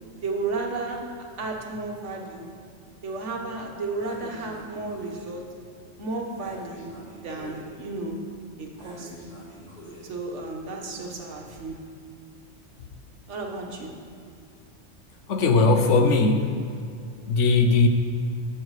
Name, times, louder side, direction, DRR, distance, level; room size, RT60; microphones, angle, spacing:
voice 1, 0.2-2.5 3.0-5.5 6.0-7.0 7.2-8.3 8.6-9.1 10.0-12.0 13.3-14.1, right 3 dB, 70° right, 1 dB, 1.5 m, -33 dB
Breathing, 4.0-5.3 6.4-7.7 8.8-10.1, equal, 55° left, 3.3 m, -44 dB
voice 2, 15.3-16.5 17.3-17.9, left 3 dB, 70° left, 6 dB, 1.1 m, -19 dB
10.5 x 7.5 x 4.8 m, 2.3 s
omnidirectional pair, 1.3 m